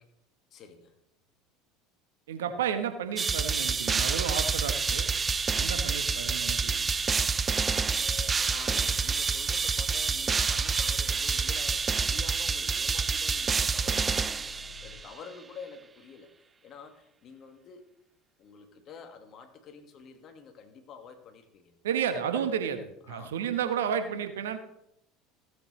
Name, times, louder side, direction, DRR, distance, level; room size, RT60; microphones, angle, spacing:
voice 1, 0.5-1.0 5.7-6.3 8.0-14.3 14.8-16.3 16.6-17.9 18.4-21.7 22.2-22.7 23.1-23.3 23.7-23.9, left 5 dB, 45° left, 6 dB, 1.8 m, -48 dB
voice 2, 2.3-5.1 5.6-6.9 21.8-24.6, right 8 dB, 75° right, 8 dB, 1.1 m, -32 dB
sound 1, 3.2-15.1, right 5 dB, 25° right, 0.5 m, -28 dB
Bus, 4.5-15.0, left 5 dB, 85° left, 0.8 m, -49 dB
16.0 x 8.2 x 3.2 m, 0.80 s
hypercardioid pair, 75°, 0 cm